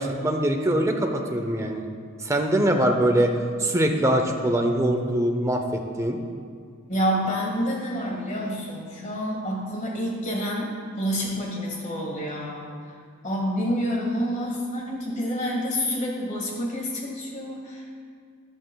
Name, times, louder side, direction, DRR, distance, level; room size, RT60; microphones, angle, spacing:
voice 1, 0.0-1.8 2.2-3.3 3.6-6.2, right 1 dB, 15° right, 3 dB, 0.6 m, -23 dB
voice 2, 6.9-10.7 11.0-12.8 13.2-18.0, equal, 35° left, -1 dB, 1.8 m, -28 dB
14.0 x 9.9 x 2.3 m, 2.1 s
head